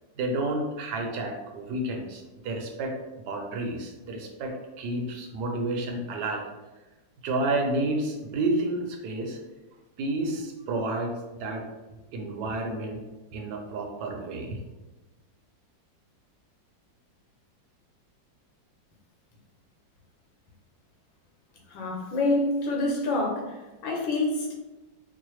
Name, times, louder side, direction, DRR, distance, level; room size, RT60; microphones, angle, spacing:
voice 1, 0.2-6.4 7.2-9.4 10.0-11.1 11.4-11.6 12.1-13.0 13.3-14.6, right 2 dB, 70° right, 2 dB, 1.1 m, -30 dB
voice 2, 21.7-24.5, left 2 dB, 85° left, -1 dB, 1.6 m, -27 dB
4.6 x 2.0 x 3.1 m, 1.1 s
omnidirectional pair, 2.0 m